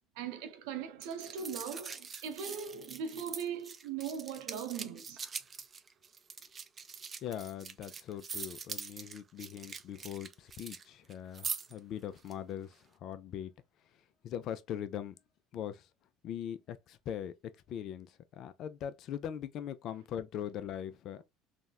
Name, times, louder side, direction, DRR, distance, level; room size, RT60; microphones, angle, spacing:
voice 1, 0.2-5.2, right 7 dB, 80° right, 0.6 m, -40 dB
sound 1, 1.0-10.8 11.1-11.8 12.2-12.3, right 6 dB, 30° right, 0.3 m, -43 dB
voice 2, 7.2-13.5 14.2-15.2 15.5-15.9 16.2-17.3 17.7-21.2, left 10 dB, 55° left, 0.3 m, -41 dB
3.5 x 2.1 x 2.2 m
supercardioid pair, 100°, 0 cm